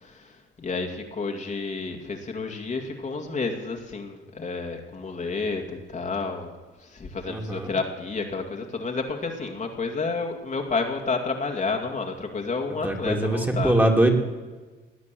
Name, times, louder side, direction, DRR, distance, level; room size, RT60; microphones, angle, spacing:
voice 1, 0.0-0.3 0.6-6.5 6.8-13.9, left 4 dB, 40° left, 2 dB, 2.3 m, -30 dB
voice 2, 7.3-7.7 12.8-14.1, right 1 dB, 10° right, 2 dB, 2.7 m, -22 dB
18.5 x 9.4 x 7.7 m, 1.3 s
cardioid pair, 90°, 20 cm